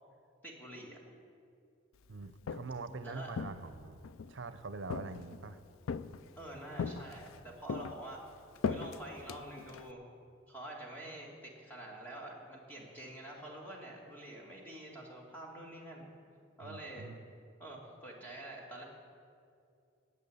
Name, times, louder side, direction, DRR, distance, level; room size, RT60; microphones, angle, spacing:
voice 1, 0.4-1.0 3.0-3.5 6.4-10.0 10.5-16.1 16.6-17.1 17.6-18.8, right 1 dB, 10° left, -2 dB, 2.1 m, -47 dB
voice 2, 2.1-4.0 4.3-5.6 16.6-17.2, right 3 dB, 65° right, 11 dB, 0.6 m, -44 dB
Walk footsteps, 2.2-2.9 3.3-4.3 4.9-5.5 5.9-6.4 6.8-7.4 7.7-9.9, left 5 dB, 85° left, 0.4 m, -39 dB
11.0 x 8.7 x 8.5 m, 2.4 s
head